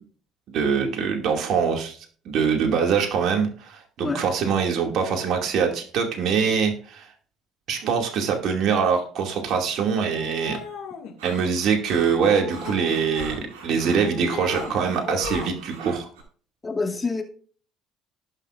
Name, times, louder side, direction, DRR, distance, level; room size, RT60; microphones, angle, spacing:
voice 1, 0.5-2.0 2.3-7.1 7.7-10.6 11.2-16.1, right 6 dB, 60° right, 2.4 m, -23 dB
sound 1, 10.1-11.1 12.1-13.5 13.8-14.7 15.0-15.6, left 8 dB, 70° left, 2.4 m, -37 dB
sound 2, 11.2-16.2, right 4 dB, 85° right, 2.3 m, -39 dB
voice 2, 16.6-17.2, left 4 dB, 25° left, 2.5 m, -26 dB
18.5 x 6.5 x 2.6 m
hypercardioid pair, 60°, 0 cm